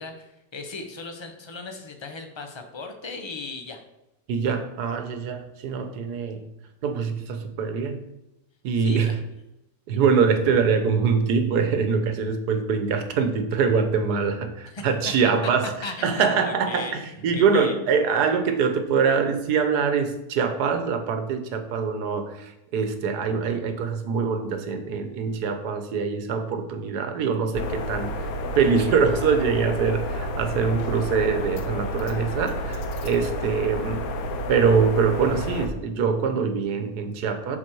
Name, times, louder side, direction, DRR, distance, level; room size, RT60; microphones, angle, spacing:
voice 1, 0.0-3.8 8.8-9.1 14.7-14.9 15.8-16.9 17.3-17.8, left 3 dB, 40° left, 5 dB, 0.3 m, -37 dB
voice 2, 4.3-6.4 6.8-8.0 8.6-9.2 9.9-15.7 16.0-28.3 28.5-34.1 34.5-37.6, right 5 dB, 85° right, 7 dB, 1.4 m, -24 dB
sound 1, 27.5-35.7, equal, 70° left, 1.2 m, -30 dB
7.6 x 4.2 x 4.6 m, 0.89 s
omnidirectional pair, 1.7 m